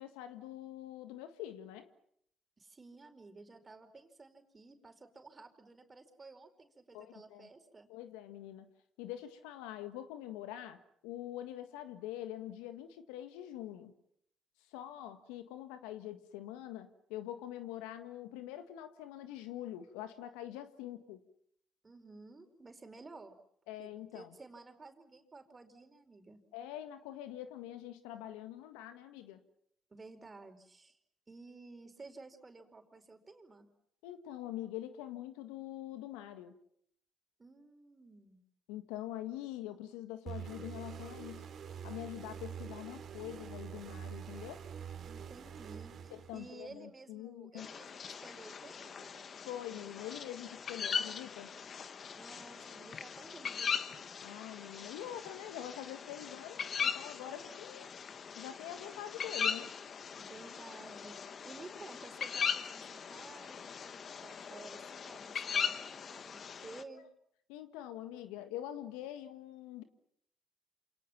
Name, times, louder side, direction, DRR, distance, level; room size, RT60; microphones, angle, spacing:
voice 1, 0.0-1.9 6.9-7.5 7.9-8.7 9.0-13.9 14.7-21.2 23.7-24.3 26.5-29.4 34.0-36.5 38.7-41.5 41.8-44.6 46.3-47.7 49.4-51.5 54.2-57.9 58.4-59.7 67.5-69.8, left 12 dB, 80° left, 10 dB, 1.7 m, -44 dB
voice 2, 2.6-7.9 21.8-23.3 23.8-26.4 29.9-31.0 31.3-33.7 37.4-38.4 45.0-49.3 52.1-54.1 60.2-67.1, right 3 dB, 30° right, 7 dB, 4.8 m, -54 dB
sound 1, 40.3-46.7, right 8 dB, 60° right, 2.9 m, -46 dB
sound 2, 47.6-66.8, left 6 dB, 50° left, 1.4 m, -40 dB
28.0 x 27.5 x 6.0 m, 0.70 s
hypercardioid pair, 50°, 0 cm